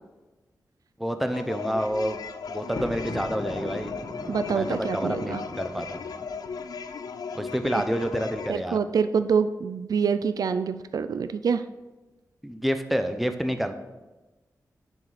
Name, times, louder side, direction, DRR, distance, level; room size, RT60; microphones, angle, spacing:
voice 1, 1.0-2.2 2.5-3.9 4.5-6.0 7.3-8.8 12.4-13.7, equal, ahead, 7 dB, 0.7 m, -28 dB
sound 1, 1.3-8.5, left 5 dB, 85° left, 0.5 m, -36 dB
Thunder, 2.5-6.7, left 1 dB, 60° left, 1.8 m, -39 dB
voice 2, 4.3-5.4 8.5-11.6, right 6 dB, 75° right, 12 dB, 0.4 m, -26 dB
7.3 x 6.4 x 5.0 m, 1.1 s
wide cardioid pair, 100°, 6 cm